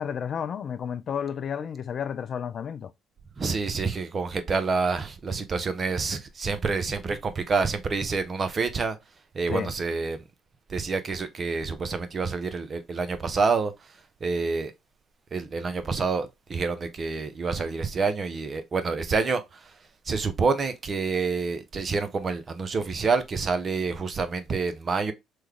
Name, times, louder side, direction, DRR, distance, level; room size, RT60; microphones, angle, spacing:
voice 1, 0.0-2.9 9.5-9.7, left 7 dB, 50° left, 0.3 m, -31 dB
voice 2, 3.4-9.0 9.3-10.2 10.7-14.7 15.3-19.7 20.1-25.1, right 4 dB, 40° right, 0.6 m, -28 dB
3.1 x 2.2 x 3.4 m
hypercardioid pair, 60°, 0 cm